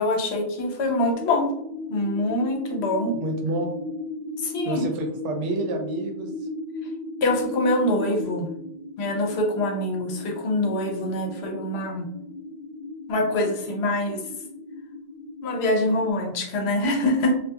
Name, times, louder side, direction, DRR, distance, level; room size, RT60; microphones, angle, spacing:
voice 1, 0.0-1.5 1.9-3.1 4.4-4.8 7.2-8.5 9.0-12.1 13.1-14.2 15.4-17.3, left 1 dB, 70° left, 1 dB, 0.8 m, -24 dB
sound 1, 1.1-16.1, left 3 dB, 50° right, 0.7 m, -36 dB
voice 2, 3.2-3.7 4.6-6.3, right 3 dB, 85° right, 4 dB, 0.9 m, -28 dB
2.3 x 2.3 x 2.6 m, 0.78 s
omnidirectional pair, 1.2 m